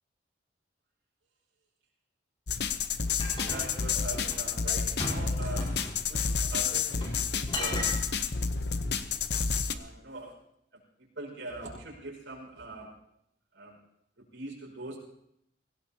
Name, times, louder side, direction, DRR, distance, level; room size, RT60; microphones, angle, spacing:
sound 1, 2.5-9.7, left 5 dB, 60° left, 0.9 m, -30 dB
sound 2, 3.2-4.5 5.0-6.0 6.9-7.2 7.5-8.0, left 1 dB, 30° left, 5.2 m, -36 dB
voice 1, 3.4-5.7 6.1-7.9 9.7-10.4 10.7-12.9 13.5-13.8 14.3-15.0, right 1 dB, 85° right, -1 dB, 5.6 m, -42 dB
24.0 x 17.0 x 2.9 m, 0.76 s
head